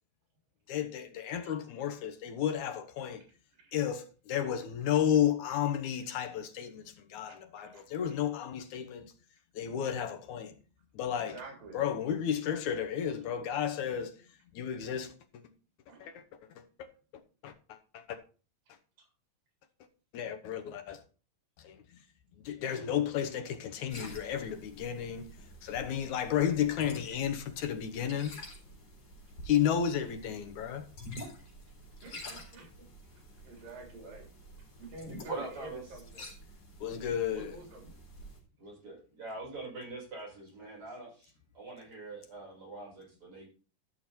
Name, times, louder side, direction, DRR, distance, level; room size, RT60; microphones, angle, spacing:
voice 1, 0.7-3.2 3.7-9.1 9.5-10.6 10.9-11.4 11.7-14.1 14.5-15.4 16.0-16.2 16.6-16.9 17.4-18.2 20.1-21.0 21.6-21.8 22.4-25.3 25.6-28.3 29.4-30.9 36.8-37.5, left 9 dB, 70° left, 2.2 m, -32 dB
voice 2, 7.3-8.1 11.2-11.8 15.9-16.2 19.0-19.1 22.7-22.8 30.0-30.1 31.5-31.6 32.0-32.9 33.4-34.3 34.8-36.3 37.3-38.0, right 3 dB, 70° right, 5.2 m, -49 dB
sound 1, 23.9-38.4, left 1 dB, 45° left, 4.7 m, -49 dB
voice 3, 35.3-35.8 38.6-43.5, right 3 dB, 35° right, 6.9 m, -43 dB
13.0 x 6.4 x 4.3 m
omnidirectional pair, 4.1 m